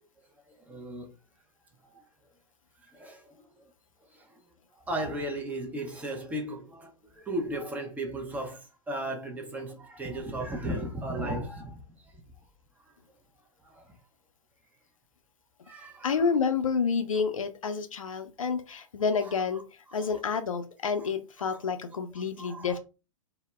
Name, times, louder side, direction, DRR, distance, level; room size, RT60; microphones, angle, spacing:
voice 1, 0.7-1.1 2.8-3.3 4.1-4.2 4.9-11.8 13.6-13.8 15.7-16.2 19.2-19.6 19.9-20.2 22.2-22.8, right 1 dB, 10° right, 0.4 m, -36 dB
voice 2, 16.0-19.6 19.9-22.8, left 5 dB, 75° left, 0.5 m, -29 dB
2.0 x 2.0 x 3.2 m
figure-of-eight pair, 110°, 17 cm